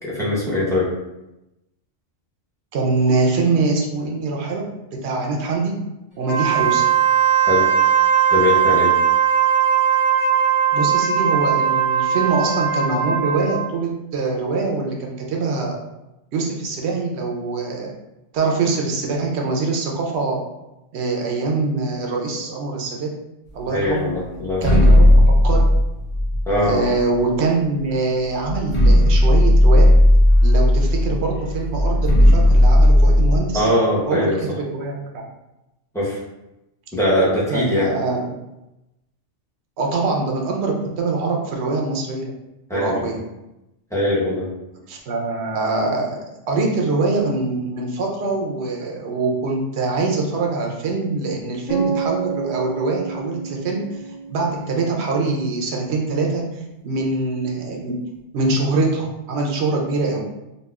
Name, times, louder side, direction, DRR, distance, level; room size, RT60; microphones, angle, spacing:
voice 1, 0.0-0.9 7.5-7.7 8.3-8.9 23.7-24.8 26.5-26.8 33.5-34.4 35.9-36.2 36.9-37.9 42.7-43.2 43.9-44.5, left 1 dB, 5° left, -7 dB, 0.7 m, -21 dB
voice 2, 2.7-4.6 5.0-5.7 6.2-6.9 10.7-15.8 16.3-17.9 18.3-20.4 20.9-23.1 23.5-24.1 24.6-25.7 26.6-29.9 30.4-33.7 34.1-35.2 37.5-38.3 39.8-42.3 42.7-43.2 44.9-46.2 46.5-54.0 54.3-57.9 58.3-60.2, right 3 dB, 65° right, 0 dB, 0.9 m, -23 dB
Wind instrument woodwind instrument, 6.2-13.7, right 8 dB, 75° left, 1.6 m, -18 dB
sound 1, 24.5-27.2 28.0-28.1 28.4-33.4, left 1 dB, 25° left, 0.9 m, -14 dB
sound 2, 51.7-55.6, right 5 dB, 45° left, 1.2 m, -29 dB
4.0 x 2.4 x 2.3 m, 0.94 s
omnidirectional pair, 1.2 m